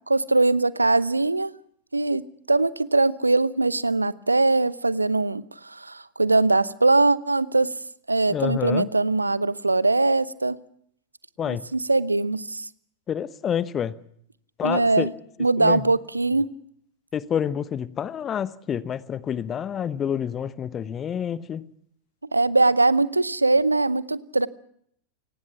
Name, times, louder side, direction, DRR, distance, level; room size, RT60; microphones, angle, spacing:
voice 1, 0.1-1.5 1.9-2.2 2.5-7.7 8.1-10.6 11.5-12.7 14.6-15.1 15.4-16.5 22.3-24.5, right 2 dB, 80° right, 0.8 m, -21 dB
voice 2, 8.3-8.9 11.4-11.7 13.1-13.9 14.6-15.1 15.6-15.8 17.1-21.6, left 8 dB, 25° left, 1.0 m, -28 dB
29.5 x 18.5 x 5.8 m
figure-of-eight pair, 90°, 0 cm